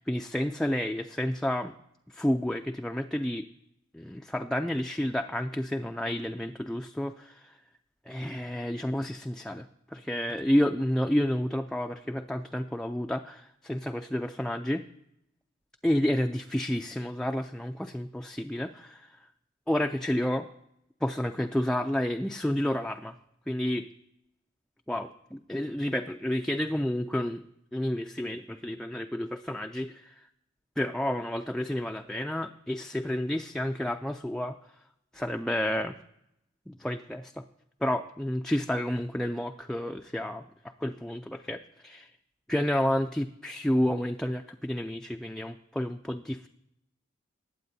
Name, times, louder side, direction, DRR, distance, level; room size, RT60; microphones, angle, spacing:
voice 1, 0.0-1.8 2.1-3.5 3.9-7.6 8.1-14.8 15.8-19.3 19.7-20.5 21.0-23.2 23.5-23.9 24.9-27.4 27.7-30.3 30.8-34.8 35.1-36.0 36.7-37.4 37.8-42.1 42.5-46.5, left 1 dB, 5° left, 4 dB, 0.3 m, -30 dB
20.0 x 8.5 x 2.7 m, 0.82 s
head